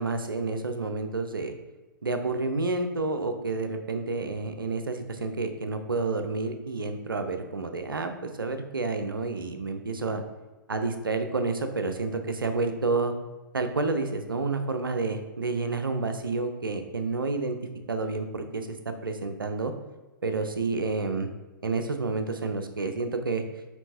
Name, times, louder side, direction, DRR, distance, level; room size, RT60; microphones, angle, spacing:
voice 1, 0.0-1.5 2.0-10.2 10.7-13.1 13.5-17.6 17.9-19.7 20.2-21.3 21.6-23.4, right 3 dB, 75° right, 7 dB, 0.5 m, -29 dB
4.4 x 4.1 x 2.8 m, 1.2 s
figure-of-eight pair, 115°, 11 cm